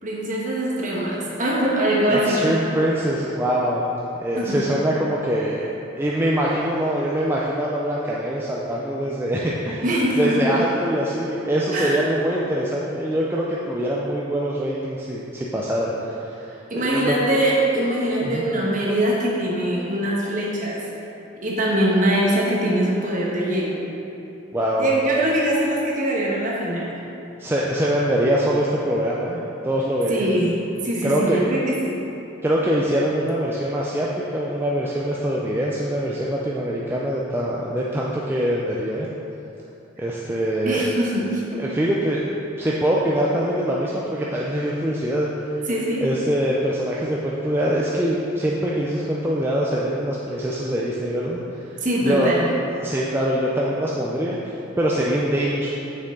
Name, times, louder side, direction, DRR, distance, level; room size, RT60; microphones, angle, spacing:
voice 1, 0.0-2.5 4.4-4.6 9.8-10.3 11.7-12.0 16.7-20.8 21.4-23.9 24.8-26.9 30.1-32.0 40.6-41.6 45.7-46.0 51.8-52.5, right 1 dB, 40° right, -4 dB, 1.2 m, -22 dB
voice 2, 2.1-3.8 4.2-5.7 6.0-9.8 10.2-17.1 18.2-18.4 24.5-24.9 27.4-30.3 31.0-31.4 32.4-39.1 40.0-40.9 41.6-42.3 42.6-45.3 46.0-51.4 51.7-52.4 52.8-55.7, right 1 dB, 10° right, -5 dB, 0.4 m, -23 dB
6.5 x 6.2 x 3.7 m, 2.8 s
head